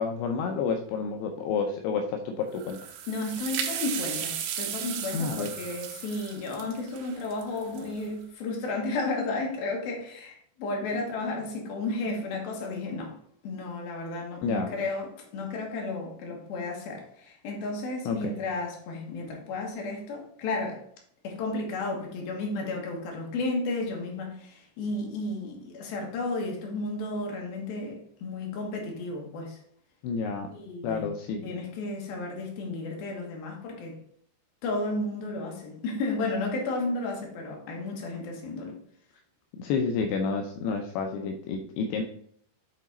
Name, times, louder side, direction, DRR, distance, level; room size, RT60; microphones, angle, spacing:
voice 1, 0.0-2.9 5.1-5.5 14.4-14.7 18.1-18.4 30.0-30.5 30.8-31.4 39.5-42.0, left 5 dB, 80° left, 2.5 m, -30 dB
sound 1, 2.5-8.1, right 9 dB, 85° right, 3.2 m, -35 dB
voice 2, 3.1-13.1 13.4-20.8 21.2-29.6 30.5-31.1 31.4-34.0 34.6-38.8, left 2 dB, 65° left, 2.9 m, -33 dB
8.4 x 3.9 x 4.2 m
omnidirectional pair, 5.1 m